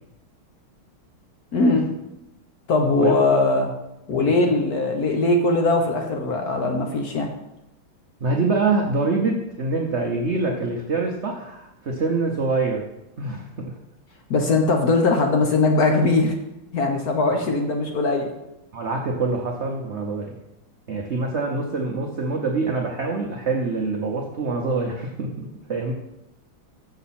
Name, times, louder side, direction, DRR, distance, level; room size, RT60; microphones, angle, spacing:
voice 1, 1.5-1.9 2.7-3.7 4.1-7.3 14.3-16.3 16.7-18.3, left 3 dB, 60° left, 3 dB, 1.1 m, -20 dB
voice 2, 8.2-12.9 13.2-13.7 17.3-17.4 18.7-20.4 20.9-25.9, right 3 dB, 85° right, 1 dB, 0.6 m, -25 dB
7.0 x 6.6 x 4.2 m, 0.90 s
omnidirectional pair, 2.3 m